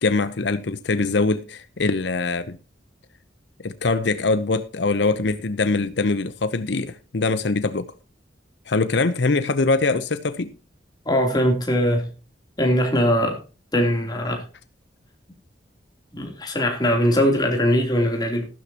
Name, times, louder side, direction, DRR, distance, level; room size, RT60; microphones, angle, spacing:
voice 1, 0.0-2.6 3.6-7.9 8.7-10.5, left 3 dB, 70° left, 0.7 m, -23 dB
voice 2, 11.0-12.1 12.6-13.4 13.7-14.4 16.1-18.5, equal, 20° left, 3.1 m, -21 dB
15.0 x 12.5 x 2.9 m
head